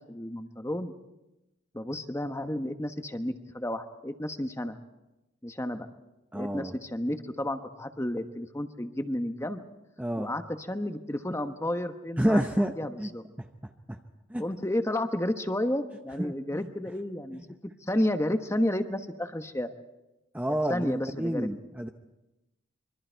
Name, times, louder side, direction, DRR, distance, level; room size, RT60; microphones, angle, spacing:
voice 1, 0.1-0.9 1.7-4.8 5.4-5.9 6.3-9.6 10.2-12.4 12.8-13.2 14.4-17.4 17.9-19.7 20.7-21.5, left 1 dB, 15° left, 7 dB, 1.1 m, -31 dB
voice 2, 6.3-6.8 10.0-10.3 12.2-12.7 13.0-13.1 13.4-13.5 13.9-14.0 14.3-14.4 16.2-16.7 20.3-21.9, equal, 10° right, 5 dB, 0.7 m, -29 dB
26.0 x 23.5 x 4.6 m, 0.98 s
head